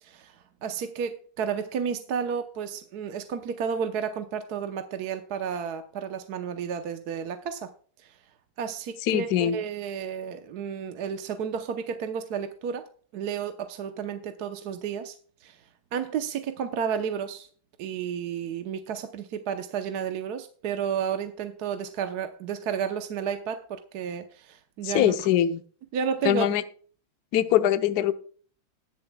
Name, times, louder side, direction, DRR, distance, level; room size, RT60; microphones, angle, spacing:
voice 1, 0.0-7.7 8.0-8.2 8.6-12.8 13.1-15.1 15.4-15.6 15.9-17.5 17.8-25.1 25.9-26.5, right 7 dB, 60° right, 1.2 m, -32 dB
voice 2, 9.1-9.6 24.8-25.6 26.2-26.6 27.3-28.1, left 11 dB, 60° left, 1.1 m, -22 dB
20.0 x 7.1 x 2.3 m
omnidirectional pair, 2.2 m